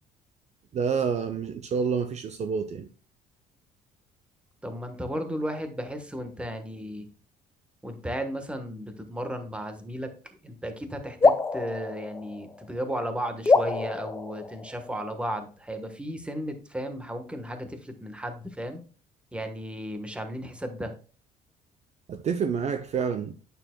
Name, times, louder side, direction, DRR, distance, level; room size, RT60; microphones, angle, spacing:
voice 1, 0.7-2.9 22.1-23.3, right 6 dB, 40° right, 0.6 m, -28 dB
voice 2, 4.6-7.1 7.8-18.8 19.3-20.9, equal, 5° right, 1.2 m, -34 dB
sound 1, 11.2-12.9 13.4-15.1, left 4 dB, 15° left, 0.5 m, -25 dB
8.8 x 6.7 x 2.2 m
cardioid pair, 110°, 17 cm